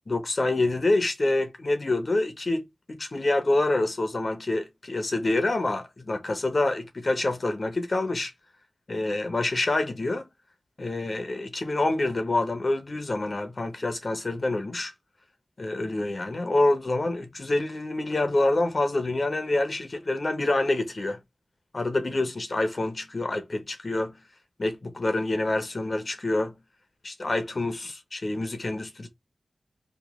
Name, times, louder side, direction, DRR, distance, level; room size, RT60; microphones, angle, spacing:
voice 1, 0.1-8.3 8.9-10.2 10.8-14.9 15.6-21.2 21.7-24.1 24.6-26.5 27.0-29.1, left 2 dB, 50° left, 0.7 m, -27 dB
3.0 x 2.4 x 3.5 m
wide cardioid pair, 70°, 0 cm